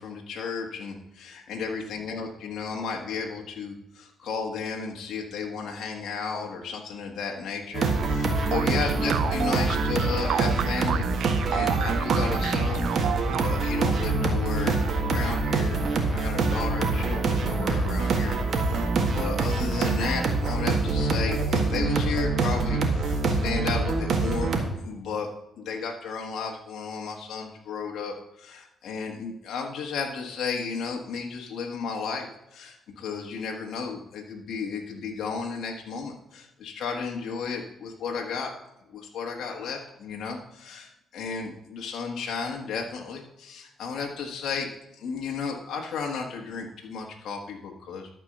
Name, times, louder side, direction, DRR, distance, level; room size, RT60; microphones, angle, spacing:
voice 1, 0.0-12.9 13.3-25.3 25.6-38.5 38.9-48.1, left 5 dB, 70° left, 1 dB, 1.5 m, -34 dB
sound 1, 7.7-24.6, right 3 dB, 55° right, 1.7 m, -25 dB
sound 2, 8.5-13.8, right 10 dB, 75° right, 0.4 m, -32 dB
12.5 x 4.6 x 6.6 m, 0.87 s
cardioid pair, 90°, 0 cm